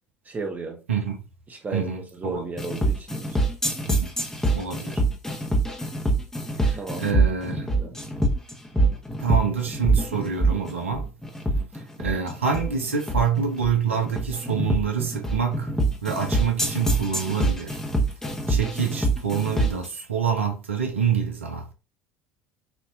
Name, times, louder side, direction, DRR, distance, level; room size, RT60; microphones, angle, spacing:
voice 1, 0.3-0.8 1.5-3.4 6.7-7.2 7.8-8.0, right 3 dB, 25° right, 1.2 m, -34 dB
voice 2, 1.7-2.4 3.9-4.2 4.5-5.0 6.6-7.7 9.2-11.1 11.7-17.8 18.5-21.7, right 7 dB, 80° right, 0.8 m, -27 dB
sound 1, 2.6-19.9, right 2 dB, 10° left, 1.2 m, -25 dB
6.1 x 2.9 x 2.6 m
figure-of-eight pair, 65°, 7 cm